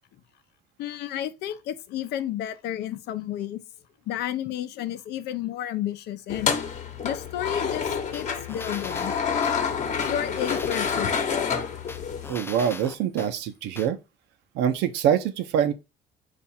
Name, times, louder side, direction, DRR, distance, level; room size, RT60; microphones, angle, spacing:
voice 1, 0.8-3.6 4.1-6.6 7.0-7.9 8.1-9.1 10.1-11.1, left 11 dB, 80° left, 0.6 m, -31 dB
sound 1, 6.3-12.3, left 6 dB, 45° left, 0.9 m, -28 dB
sound 2, 8.1-9.6 10.0-11.4 11.9-13.3 13.8-13.9, left 3 dB, 15° left, 0.4 m, -39 dB
voice 2, 12.3-14.0 14.5-15.7, right 9 dB, 85° right, 0.7 m, -24 dB
4.6 x 2.5 x 4.2 m
cardioid pair, 110°, 17 cm